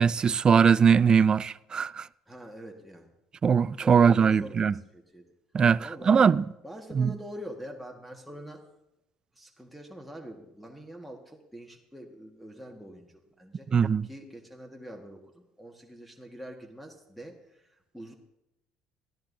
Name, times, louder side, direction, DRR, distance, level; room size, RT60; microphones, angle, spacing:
voice 1, 0.0-2.1 3.4-4.7 5.5-6.4 7.0-7.1 13.7-14.1, right 6 dB, 35° right, 0.4 m, -21 dB
voice 2, 2.3-3.1 3.8-5.3 5.8-6.3 6.6-8.6 9.3-13.7 14.0-18.1, equal, ahead, 1.6 m, -44 dB
17.5 x 13.5 x 2.7 m
supercardioid pair, 85°, 2 cm